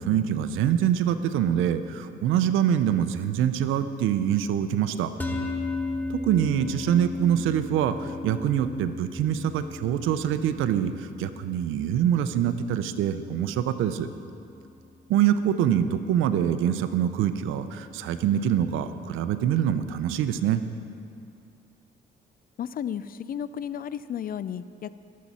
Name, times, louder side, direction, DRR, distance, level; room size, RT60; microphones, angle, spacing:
voice 1, 0.0-5.1 6.1-14.1 15.1-20.6, right 10 dB, 90° right, 11 dB, 0.6 m, -25 dB
sound 1, 5.2-15.6, left 3 dB, 10° left, 1.1 m, -36 dB
voice 2, 22.6-25.0, left 9 dB, 45° left, 15 dB, 0.4 m, -33 dB
20.0 x 7.5 x 4.2 m, 2.5 s
cardioid pair, 90°, 20 cm